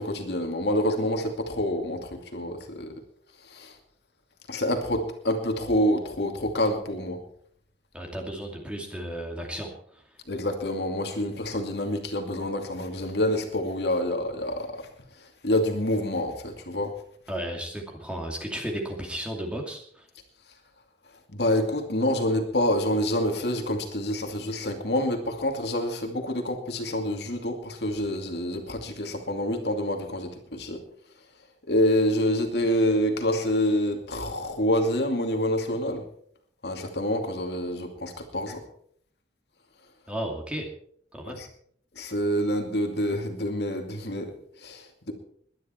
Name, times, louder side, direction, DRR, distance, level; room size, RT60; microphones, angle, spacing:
voice 1, 0.0-2.9 3.4-3.8 4.5-7.2 10.3-14.9 15.2-16.9 21.3-30.8 31.7-36.0 36.6-38.6 41.4-41.5 42.0-45.1, left 1 dB, 60° left, 4 dB, 2.5 m, -27 dB
voice 2, 7.9-10.0 17.3-20.1 40.1-40.7 41.1-41.4, right 1 dB, 5° right, 1 dB, 2.5 m, -34 dB
21.5 x 11.0 x 4.4 m, 0.62 s
head